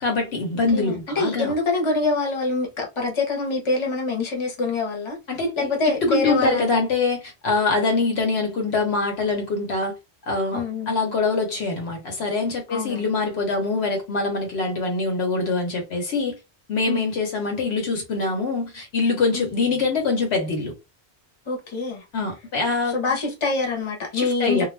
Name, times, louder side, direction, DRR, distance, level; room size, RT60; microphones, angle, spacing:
voice 1, 0.0-1.5 5.3-9.9 10.2-16.4 16.7-20.7 22.1-23.0 24.1-24.7, left 3 dB, 70° left, 1.0 m, -24 dB
voice 2, 0.7-5.2 5.6-6.7 10.5-11.0 12.7-13.1 16.9-17.0 19.3-19.5 21.5-22.0 22.9-24.7, left 3 dB, 30° left, 0.8 m, -25 dB
2.3 x 2.0 x 3.1 m
omnidirectional pair, 1.2 m